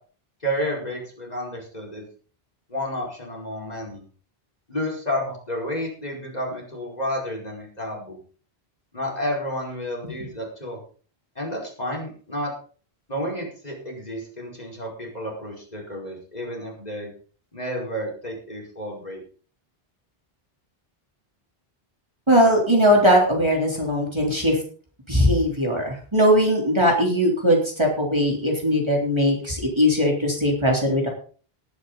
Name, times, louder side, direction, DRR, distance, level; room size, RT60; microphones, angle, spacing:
voice 1, 0.4-2.1 2.7-4.0 4.7-8.2 8.9-10.8 11.3-12.5 13.1-17.1 17.5-19.2, equal, 40° left, -1 dB, 5.2 m, -31 dB
voice 2, 22.3-24.6 25.1-31.1, equal, 25° right, -1 dB, 3.7 m, -20 dB
19.0 x 9.9 x 4.0 m, 0.42 s
omnidirectional pair, 1.0 m